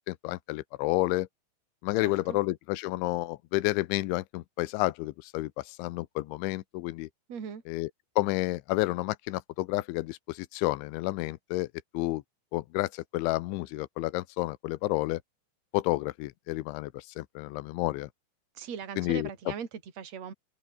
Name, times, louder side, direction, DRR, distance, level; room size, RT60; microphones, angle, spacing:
voice 1, 0.1-1.3 1.8-7.1 7.7-7.9 8.2-11.7 11.9-12.2 12.5-15.2 15.7-18.1 19.0-19.3, left 19 dB, 80° left, 3.2 m, -30 dB
voice 2, 2.0-2.4 7.3-7.6 18.5-20.3, right 7 dB, 40° right, 4.2 m, -39 dB
open air
omnidirectional pair, 5.4 m